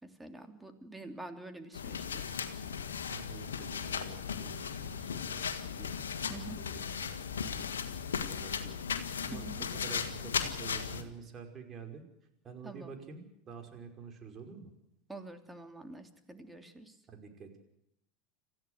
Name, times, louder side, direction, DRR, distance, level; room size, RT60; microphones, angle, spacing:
voice 1, 0.0-2.0 6.3-6.6 9.3-9.6 12.6-12.9 15.1-17.0, right 2 dB, 10° right, 6 dB, 3.2 m, -46 dB
sound 1, 1.7-11.0, left 7 dB, 85° left, 1.8 m, -37 dB
voice 2, 3.1-9.5 9.8-12.0 12.4-14.7 17.1-17.6, right 6 dB, 35° right, 4 dB, 5.4 m, -49 dB
27.0 x 15.0 x 8.1 m, 0.80 s
hypercardioid pair, 80°, 0 cm